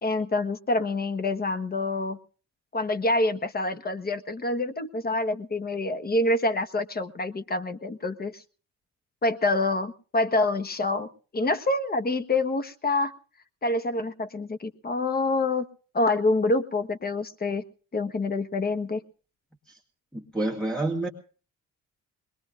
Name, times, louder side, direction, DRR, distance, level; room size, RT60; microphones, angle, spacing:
voice 1, 0.0-2.2 2.7-8.4 9.2-11.1 11.3-13.1 13.6-15.7 15.9-17.6 17.9-19.0, left 2 dB, 30° left, 11 dB, 1.4 m, -26 dB
voice 2, 20.1-21.1, right 2 dB, ahead, 1 dB, 2.1 m, -28 dB
22.0 x 21.0 x 2.6 m, 0.39 s
cardioid pair, 90°, 30 cm